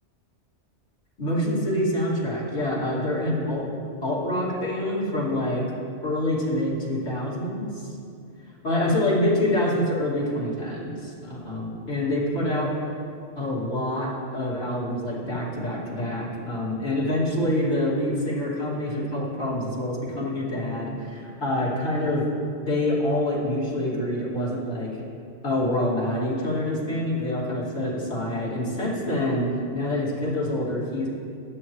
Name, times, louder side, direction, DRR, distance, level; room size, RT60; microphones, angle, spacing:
voice 1, 1.2-5.6 6.0-7.7 8.6-12.7 13.4-22.2 22.6-25.0 25.4-31.1, left 1 dB, 75° left, -6 dB, 2.8 m, -26 dB
16.0 x 10.5 x 3.2 m, 2.5 s
omnidirectional pair, 1.2 m